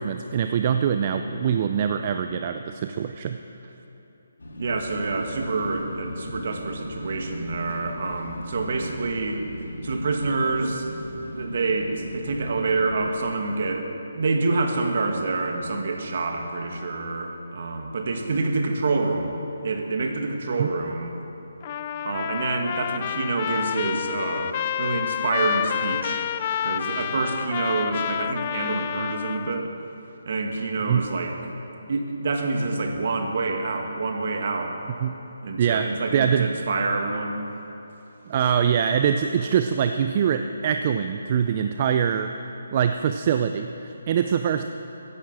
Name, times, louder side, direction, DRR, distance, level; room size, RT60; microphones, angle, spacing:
voice 1, 0.0-3.4 20.6-20.7 30.9-31.0 35.0-35.1 35.6-36.5 38.3-42.3 42.7-44.7, right 8 dB, 35° right, 7 dB, 0.5 m, -23 dB
sound 1, 4.4-13.2, left 1 dB, 90° left, 2.9 m, -38 dB
voice 2, 4.6-9.4 9.8-10.9 11.4-13.9 14.1-19.3 19.6-21.1 22.0-24.5 24.8-26.3 26.6-29.7 30.3-31.4 31.9-34.8 35.4-37.5, right 3 dB, 55° right, 3 dB, 1.9 m, -27 dB
Trumpet, 21.6-29.7, left 10 dB, 30° left, 0.3 m, -29 dB
15.0 x 11.0 x 7.5 m, 2.9 s
hypercardioid pair, 160°, 0 cm